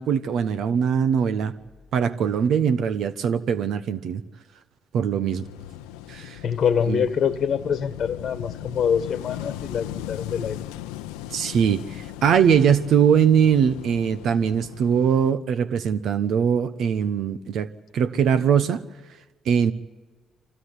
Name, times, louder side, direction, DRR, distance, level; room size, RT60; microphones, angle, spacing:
voice 1, 0.0-1.5 1.9-4.2 4.9-5.4 6.1-6.4 6.9-7.0 11.3-18.8 19.4-19.7, right 7 dB, 70° right, 12 dB, 1.0 m, -21 dB
Wind / Waves surf, 5.3-15.3, left 13 dB, 85° left, 0.7 m, -38 dB
voice 2, 6.4-10.6, left 7 dB, 60° left, 12 dB, 1.3 m, -25 dB
24.5 x 16.0 x 9.8 m, 1.2 s
hypercardioid pair, 50°, 0 cm